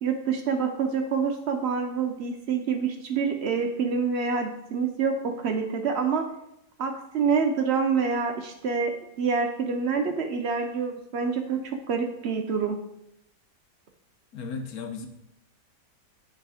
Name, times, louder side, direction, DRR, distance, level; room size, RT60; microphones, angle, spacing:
voice 1, 0.0-6.3 6.8-12.8, right 5 dB, 80° right, 5 dB, 0.6 m, -27 dB
voice 2, 14.3-15.1, left 4 dB, 65° left, 5 dB, 1.2 m, -35 dB
8.4 x 3.4 x 4.9 m, 0.82 s
omnidirectional pair, 1.8 m